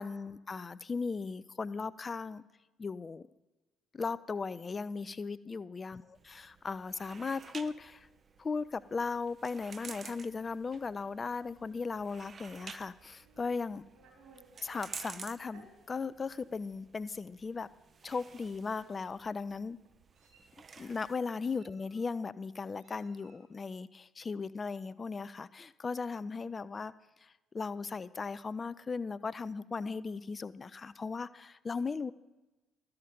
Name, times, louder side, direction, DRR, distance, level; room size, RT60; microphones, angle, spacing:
voice 1, 0.0-2.4 2.8-3.3 3.9-8.1 8.4-13.8 14.6-17.7 18.0-19.8 20.8-26.9 27.2-32.1, left 4 dB, 30° left, 17 dB, 0.3 m, -37 dB
sound 1, 6.1-21.1, right 5 dB, 35° right, 0.4 m, -52 dB
Meow, 13.2-14.8 15.5-15.7 16.5-16.6 17.0-17.2 18.2-18.4 18.7-19.3 19.9-20.6 21.4-22.1 22.8-23.5, right 4 dB, 55° right, 3.5 m, -62 dB
12.5 x 5.8 x 5.1 m, 1.1 s
figure-of-eight pair, 50°, 0 cm